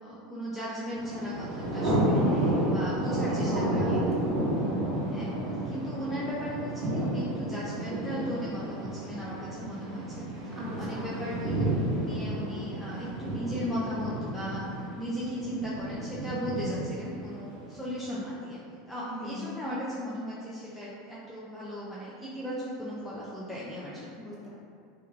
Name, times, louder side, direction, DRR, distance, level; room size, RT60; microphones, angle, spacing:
voice 1, 0.0-2.2 2.6-4.0 5.1-5.3 5.7-18.6 18.9-24.2, equal, 10° left, -8 dB, 0.4 m, -37 dB
Thunder, 1.0-17.9, right 1 dB, 55° right, 1.2 m, -31 dB
voice 2, 2.1-2.8 3.2-4.0 10.6-11.2 19.1-19.5 24.2-24.5, left 1 dB, 15° right, -8 dB, 0.8 m, -39 dB
3.0 x 2.2 x 2.2 m, 2.4 s
supercardioid pair, 120°, 0 cm